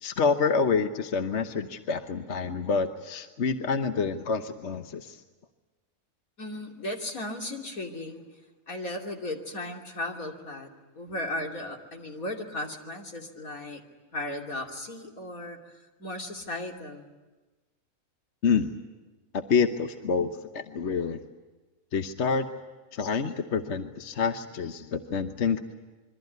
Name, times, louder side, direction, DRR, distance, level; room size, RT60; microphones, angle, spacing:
voice 1, 0.0-5.2 18.4-18.7 19.3-21.2 21.9-22.5 22.9-25.6, left 5 dB, 55° left, 7 dB, 1.3 m, -27 dB
voice 2, 6.4-8.2 8.7-10.7 10.9-13.8 14.1-17.1, left 1 dB, 75° left, 1 dB, 3.3 m, -36 dB
26.5 x 23.5 x 9.4 m, 1.2 s
omnidirectional pair, 1.5 m